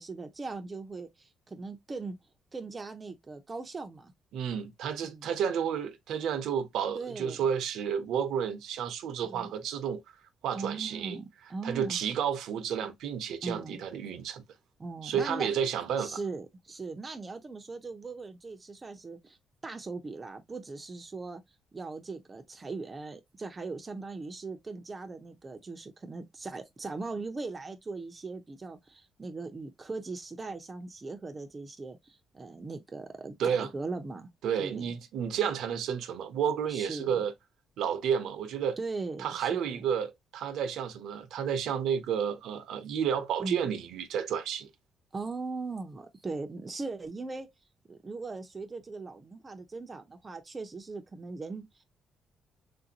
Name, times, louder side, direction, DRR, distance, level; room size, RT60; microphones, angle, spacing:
voice 1, 0.0-2.2 2.5-4.1 5.0-5.3 6.9-7.4 9.2-9.5 10.5-12.0 13.4-13.8 14.8-15.5 16.0-19.4 19.6-21.4 21.7-34.3 34.6-34.8 36.7-37.2 38.8-39.8 43.4-43.7 45.1-47.5 47.9-51.7, right 3 dB, 30° right, 0.7 m, -39 dB
voice 2, 4.3-10.0 10.4-11.2 11.6-14.4 15.0-16.2 33.4-33.7 34.4-37.3 37.8-38.8 39.2-44.7, right 8 dB, 80° right, 0.7 m, -31 dB
3.4 x 2.6 x 2.8 m
cardioid pair, 90°, 0 cm